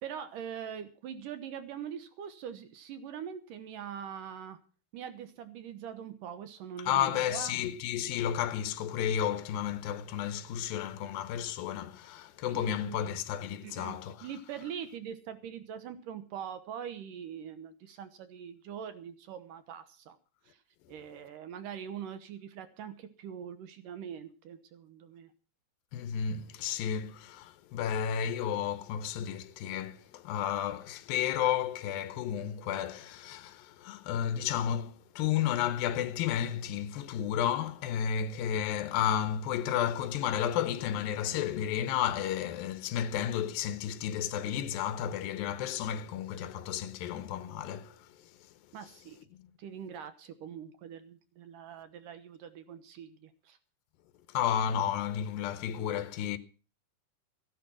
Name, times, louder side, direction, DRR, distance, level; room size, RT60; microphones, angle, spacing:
voice 1, 0.0-4.6 4.9-7.6 12.5-13.0 13.6-20.2 20.5-20.6 20.9-25.3 48.7-49.2 49.6-53.6, right 8 dB, 75° right, 2.6 m, -43 dB
voice 2, 6.9-14.3 25.9-48.1 54.3-56.4, left 9 dB, 80° left, 2.6 m, -32 dB
14.5 x 11.0 x 5.9 m
omnidirectional pair, 4.1 m